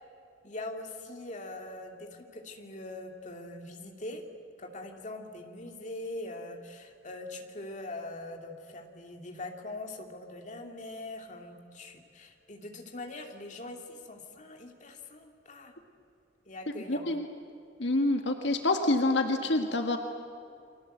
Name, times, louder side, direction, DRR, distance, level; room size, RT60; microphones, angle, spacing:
voice 1, 0.4-4.3 4.6-15.7 16.5-17.1, left 2 dB, 40° left, 3 dB, 2.8 m, -42 dB
voice 2, 16.9-17.3 17.8-20.0, left 2 dB, 75° left, 4 dB, 1.7 m, -27 dB
30.0 x 24.5 x 8.0 m, 2.6 s
head